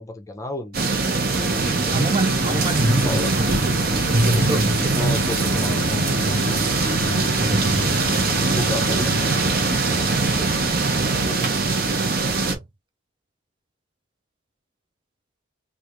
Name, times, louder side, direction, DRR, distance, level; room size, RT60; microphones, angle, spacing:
voice 1, 0.0-2.6 3.0-3.3 5.0-6.6 8.4-9.4 11.0-12.0, left 1 dB, 15° left, 0.7 m, -34 dB
sound 1, 0.7-12.5, right 3 dB, 45° right, 0.9 m, -22 dB
sound 2, 1.9-9.6, left 4 dB, 65° left, 0.5 m, -33 dB
voice 2, 1.9-3.8 4.1-5.2 5.5-5.7 7.4-8.1 9.9-10.5 12.5-12.6, right 1 dB, 20° right, 0.5 m, -24 dB
sound 3, 2.7-11.3, right 1 dB, 80° right, 1.6 m, -31 dB
3.5 x 2.5 x 3.1 m
head